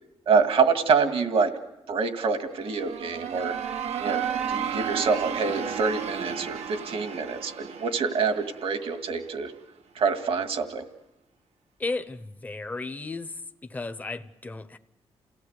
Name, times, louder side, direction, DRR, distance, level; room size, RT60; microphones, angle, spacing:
voice 1, 0.3-1.5 1.9-3.5 4.0-4.2 4.5-6.6 6.9-9.5 10.0-10.8, right 5 dB, 65° right, 7 dB, 2.0 m, -26 dB
sound 1, 2.5-9.3, right 8 dB, 85° right, 1.3 m, -33 dB
voice 2, 11.8-13.3 13.7-14.8, left 3 dB, 15° left, 10 dB, 0.8 m, -34 dB
29.0 x 17.5 x 8.1 m, 0.97 s
wide cardioid pair, 155°, 10 cm